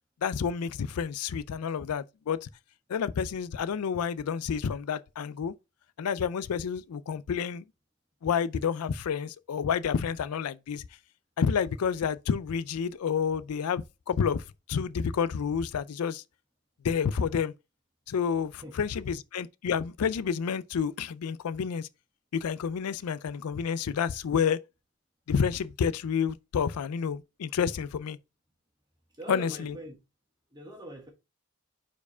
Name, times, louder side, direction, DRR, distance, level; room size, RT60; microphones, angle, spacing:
voice 1, 0.2-2.5 2.9-5.5 6.0-7.6 8.2-10.8 11.4-14.4 14.7-16.2 16.8-17.5 18.1-21.9 22.3-24.6 25.3-28.2 29.3-29.7, left 7 dB, 90° left, 0.4 m, -29 dB
voice 2, 29.2-30.0 30.5-31.1, right 1 dB, 20° right, 1.4 m, -42 dB
4.8 x 4.5 x 5.5 m
head